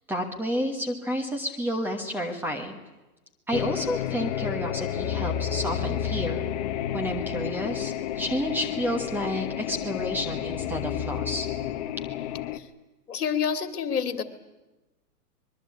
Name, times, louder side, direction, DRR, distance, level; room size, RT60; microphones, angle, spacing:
voice 1, 0.1-2.8 3.5-6.4 6.9-11.5, equal, 5° right, 3 dB, 1.2 m, -30 dB
sound 1, 3.5-12.6, left 10 dB, 25° left, 0.9 m, -31 dB
voice 2, 13.1-14.2, left 7 dB, 70° left, 9 dB, 2.6 m, -27 dB
24.5 x 22.0 x 8.5 m, 1.1 s
hypercardioid pair, 155°, 47 cm